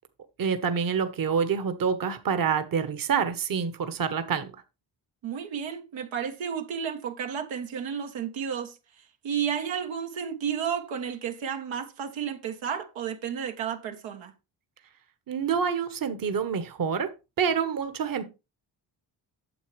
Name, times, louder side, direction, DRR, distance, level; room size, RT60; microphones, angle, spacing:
voice 1, 0.4-4.6 15.3-17.1 17.4-18.2, right 6 dB, 50° right, 1.2 m, -27 dB
voice 2, 5.2-8.7 9.2-14.3, right 8 dB, 85° right, 1.3 m, -32 dB
9.2 x 7.0 x 3.3 m
cardioid pair, 75°, 45 cm